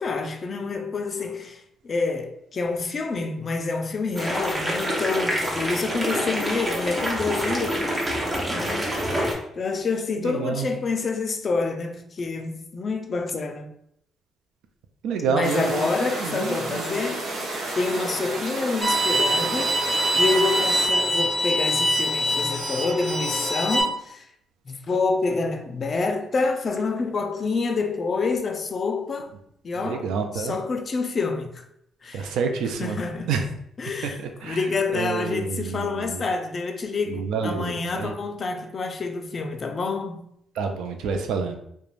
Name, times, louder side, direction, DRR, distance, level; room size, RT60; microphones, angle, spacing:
voice 1, 0.0-7.9 8.5-9.2 9.6-13.7 15.3-19.7 20.1-24.2 24.7-29.3 29.6-30.1 30.4-31.7 32.0-32.4 32.8-33.4 33.8-34.2 34.4-40.2, left 4 dB, 45° left, 0.4 m, -27 dB
sound 1, 4.1-9.3, equal, 25° right, 0.7 m, -27 dB
voice 2, 10.2-10.7 15.0-15.9 16.2-17.0 29.8-30.6 32.1-33.0 33.3-33.5 34.0-36.3 37.1-38.1 40.5-41.6, right 5 dB, 85° right, 0.4 m, -28 dB
sound 2, 15.4-20.9, right 2 dB, 70° right, 0.7 m, -32 dB
Bowed string instrument, 18.8-23.8, equal, 10° left, 0.8 m, -24 dB
2.4 x 2.2 x 3.1 m
cardioid pair, 90°, 0 cm